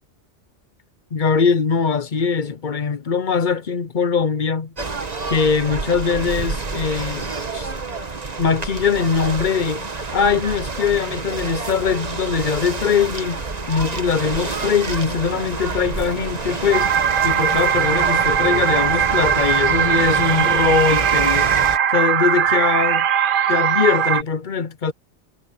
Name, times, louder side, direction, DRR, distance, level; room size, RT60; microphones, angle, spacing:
voice 1, 1.1-4.7 5.3-7.2 7.5-7.7 8.4-9.8 10.1-13.4 13.7-16.9 17.2-21.5 21.9-23.1 23.5-24.9, left 6 dB, 50° left, 0.8 m, -21 dB
sound 1, 4.8-21.8, right 3 dB, 35° right, 1.4 m, -28 dB
sound 2, 16.7-24.2, right 9 dB, 55° right, 0.7 m, -19 dB
omnidirectional pair, 1.2 m